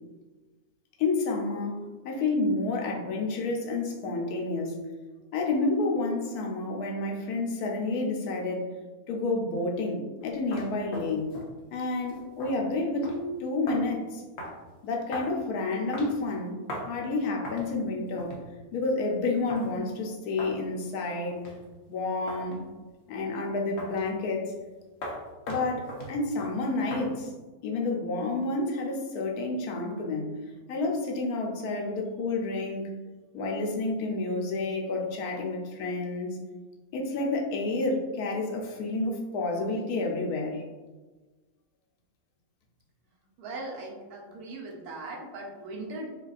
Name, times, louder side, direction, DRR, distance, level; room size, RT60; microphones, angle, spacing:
voice 1, 1.0-4.8 5.3-8.7 9.1-11.3 11.7-14.2 14.8-16.6 16.9-18.4 18.7-21.4 21.9-22.6 23.1-24.5 25.5-27.3 27.6-30.4 30.7-32.9 33.3-36.4 36.9-40.6, left 3 dB, 85° left, 1 dB, 1.2 m, -30 dB
sound 1, 10.2-10.3 10.5-11.5 12.0-12.6 13.0-13.2 13.7-13.9 14.4-14.6 15.1-15.3 15.9-16.3 16.7-16.9 17.4-17.7 18.2-18.5 19.5-19.7 20.4-20.6 21.3-21.6 22.3-22.6 23.8-24.1 25.0-27.1, equal, 55° left, 0.9 m, -39 dB
voice 2, 43.4-46.1, right 2 dB, 85° right, -1 dB, 1.3 m, -39 dB
4.9 x 2.4 x 2.4 m, 1.2 s
omnidirectional pair, 1.6 m